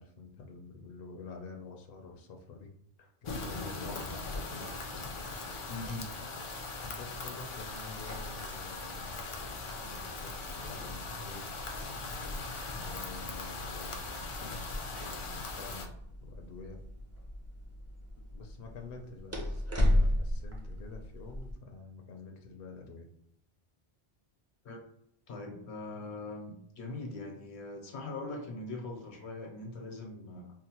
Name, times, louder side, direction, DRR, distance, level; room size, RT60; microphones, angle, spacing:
voice 1, 0.0-2.7 3.0-4.2 6.8-9.3 9.7-11.6 12.8-14.6 15.0-15.9 16.2-16.8 18.3-23.1, left 4 dB, 70° left, 2 dB, 0.7 m, -48 dB
sound 1, 3.3-15.9, left 3 dB, 50° left, 0.3 m, -40 dB
voice 2, 5.7-6.1 24.6-24.8 25.3-30.5, left 2 dB, 85° left, 2 dB, 1.1 m, -41 dB
sound 2, 7.6-21.5, left 1 dB, 20° right, 0.5 m, -36 dB
4.5 x 2.0 x 2.9 m, 0.74 s
omnidirectional pair, 1.1 m